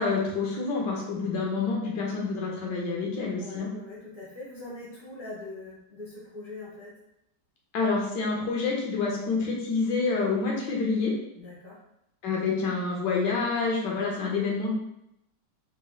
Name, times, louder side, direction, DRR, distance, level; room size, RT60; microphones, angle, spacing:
voice 1, 0.0-3.7 7.7-11.1 12.2-14.7, left 4 dB, 80° left, -2 dB, 1.5 m, -28 dB
voice 2, 3.4-7.0 11.3-11.8, left 2 dB, 10° right, -7 dB, 0.7 m, -42 dB
4.1 x 3.0 x 2.3 m, 0.81 s
omnidirectional pair, 1.9 m